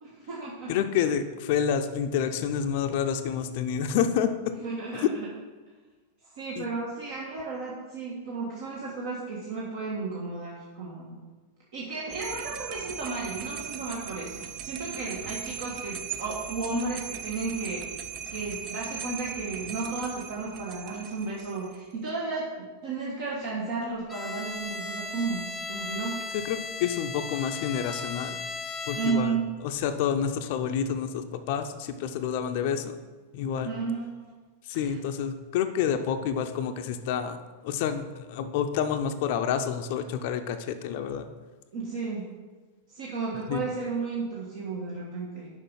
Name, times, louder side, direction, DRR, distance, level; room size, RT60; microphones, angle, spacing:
voice 1, 0.0-0.8 4.6-5.3 6.3-11.2 11.7-18.0 18.3-26.2 28.9-29.5 33.6-34.3 34.7-35.0 41.7-42.2 42.9-45.5, right 4 dB, 60° right, -5 dB, 1.5 m, -33 dB
voice 2, 0.7-4.5 6.6-6.7 26.4-28.4 28.9-29.4 29.6-33.0 33.3-33.7 34.7-37.4 37.6-41.3 43.5-43.6, left 8 dB, 55° left, 8 dB, 0.5 m, -28 dB
sound 1, 12.1-21.8, right 7 dB, 40° right, 0.6 m, -39 dB
Bowed string instrument, 24.1-29.5, left 3 dB, 20° left, 0.7 m, -36 dB
6.3 x 5.0 x 5.6 m, 1.3 s
hypercardioid pair, 95°, 0 cm